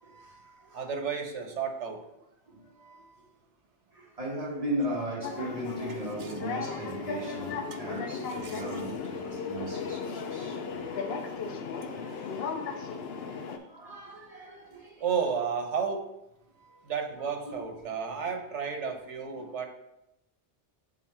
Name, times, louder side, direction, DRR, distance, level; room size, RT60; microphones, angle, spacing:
voice 1, 0.0-0.9 2.5-3.1 3.9-10.6 11.0-11.2 11.9-12.3 13.1-15.0 17.5-17.6 19.3-19.5, right 1 dB, 30° right, 1.6 m, -38 dB
voice 2, 0.7-2.0 6.2-6.3 7.7-7.8 8.4-8.8 15.0-16.0 16.9-19.7, right 6 dB, 85° right, 1.2 m, -32 dB
sound 1, 5.2-13.6, left 5 dB, 65° left, 0.8 m, -36 dB
6.4 x 4.0 x 4.3 m
omnidirectional pair, 1.2 m